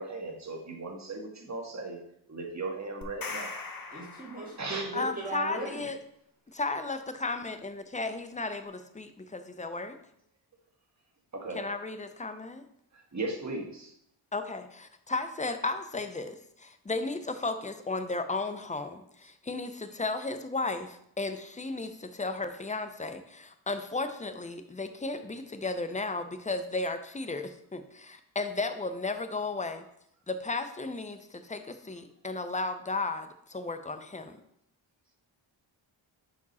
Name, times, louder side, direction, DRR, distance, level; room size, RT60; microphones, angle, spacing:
voice 1, 0.0-2.0 2.3-3.5 4.6-4.9 11.3-11.6 13.1-13.9, right 3 dB, 35° right, 1 dB, 1.7 m, -37 dB
sound 1, 3.0-5.0, left 4 dB, 45° left, 1.0 m, -40 dB
voice 2, 3.9-5.8, right 2 dB, 15° right, -6 dB, 2.6 m, -37 dB
voice 3, 4.9-6.0 6.6-10.0 11.5-12.6 14.3-29.8 30.3-34.4, left 3 dB, 15° left, 9 dB, 0.7 m, -34 dB
5.9 x 5.0 x 4.1 m, 0.72 s
cardioid pair, 60°, 48 cm